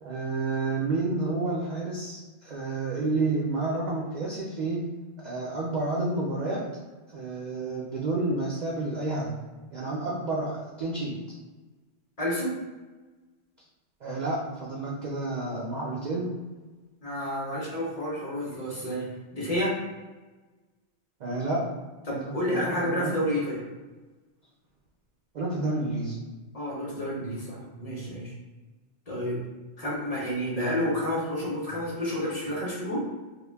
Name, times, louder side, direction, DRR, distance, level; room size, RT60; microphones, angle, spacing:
voice 1, 0.0-4.8 5.2-6.6 7.1-9.3 9.7-11.2 14.0-16.3 21.2-21.6 22.1-23.2 25.3-26.1, right 2 dB, 60° right, -3 dB, 0.4 m, -30 dB
voice 2, 12.2-12.6 17.0-19.8 22.1-23.6 26.5-28.3 29.1-29.4 29.8-33.0, equal, 40° left, -4 dB, 0.6 m, -30 dB
2.3 x 2.1 x 3.3 m, 1.2 s
omnidirectional pair, 1.2 m